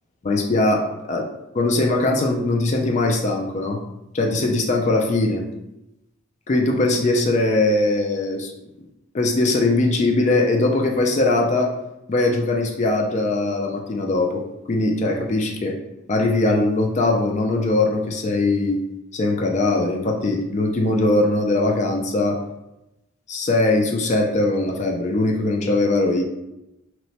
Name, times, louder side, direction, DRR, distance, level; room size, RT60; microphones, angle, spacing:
voice 1, 0.2-0.8 1.1-1.3 1.5-3.8 4.1-5.4 6.5-8.5 9.1-11.7 12.1-14.4 14.7-15.7 16.1-18.8 19.1-22.4 23.3-26.2, left 2 dB, 35° left, 1 dB, 0.3 m, -20 dB
2.9 x 2.1 x 2.7 m, 0.90 s
head